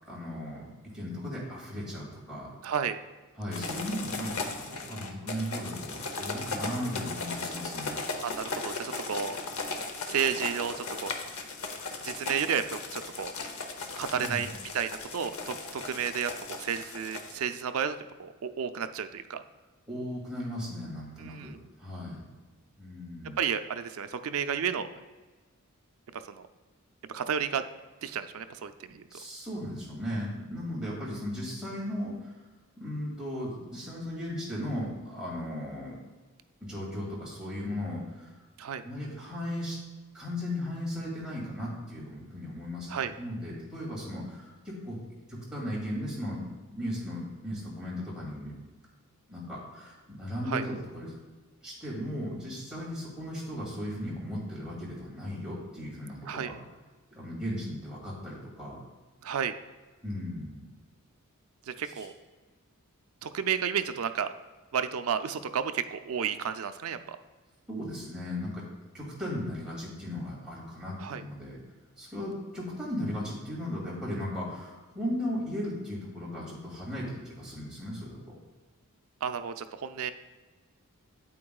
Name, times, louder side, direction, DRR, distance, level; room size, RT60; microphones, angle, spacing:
voice 1, 0.1-2.5 3.4-7.9 14.2-14.5 19.9-22.3 22.8-23.4 29.1-32.3 32.8-36.0 36.6-38.3 38.8-39.8 40.1-45.0 45.3-46.4 46.7-48.5 49.3-51.1 51.6-56.6 57.1-58.8 60.0-60.6 61.8-62.1 67.7-68.6 68.9-71.6 72.0-78.3, left 1 dB, 5° right, -7 dB, 2.4 m, -36 dB
voice 2, 2.6-3.0 8.2-9.4 10.1-11.1 12.0-13.3 14.0-14.5 14.7-19.4 21.2-21.6 23.4-24.9 26.1-26.5 27.1-27.6 28.0-29.1 38.6-38.8 42.9-43.1 50.5-50.6 56.3-56.5 59.2-59.6 61.7-62.1 63.2-64.3 64.7-67.2 71.0-71.2 79.2-80.1, right 7 dB, 70° right, 9 dB, 0.4 m, -32 dB
sound 1, 3.5-17.4, left 3 dB, 70° left, 0.8 m, -37 dB
8.5 x 8.5 x 2.3 m, 1.3 s
head